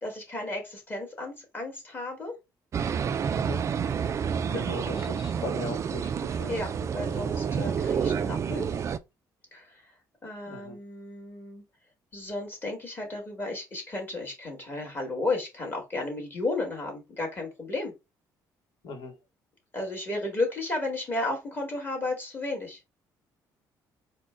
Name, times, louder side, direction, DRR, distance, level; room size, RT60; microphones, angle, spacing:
voice 1, 0.0-2.4 4.5-5.2 6.5-8.7 9.5-9.8 10.2-11.6 12.1-17.9 19.7-22.8, left 2 dB, 25° left, 1.9 m, -33 dB
sound 1, 2.7-9.0, right 7 dB, 40° right, 0.4 m, -29 dB
voice 2, 3.3-3.6 4.5-6.6 10.5-10.8 18.8-19.1, left 2 dB, 65° left, 1.3 m, -38 dB
4.3 x 2.2 x 4.6 m
cardioid pair, 115°, 8 cm